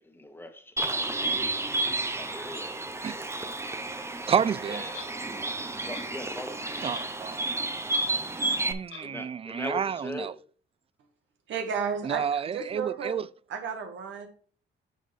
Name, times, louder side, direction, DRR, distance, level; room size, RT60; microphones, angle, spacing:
voice 1, 0.0-1.5 2.1-3.5 4.7-5.3 5.8-6.8 9.0-10.3, left 1 dB, 10° left, 1.6 m, -42 dB
Bird, 0.8-8.7, right 2 dB, 15° right, 0.9 m, -31 dB
voice 2, 4.3-4.9 6.8-7.4 8.7-10.3 12.0-13.3, right 7 dB, 30° right, 0.3 m, -29 dB
Clock, 4.9-5.1 5.9-6.1 6.9-7.2 7.5-7.6 7.9-8.1 8.9-9.1, left 6 dB, 85° left, 2.7 m, -42 dB
voice 3, 11.5-13.1 13.5-14.3, right 6 dB, 70° right, 1.6 m, -32 dB
9.9 x 5.0 x 3.3 m
cardioid pair, 90°, 20 cm